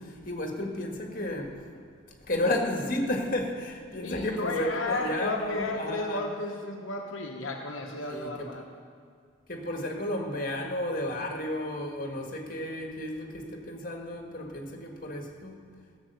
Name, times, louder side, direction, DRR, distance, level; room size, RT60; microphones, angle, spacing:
voice 1, 0.0-1.6 2.3-6.2 8.1-8.5 9.5-15.6, left 1 dB, 40° left, 2 dB, 1.7 m, -32 dB
voice 2, 4.0-8.6, left 2 dB, 75° left, 0 dB, 1.1 m, -33 dB
15.5 x 7.5 x 6.8 m, 2.2 s
head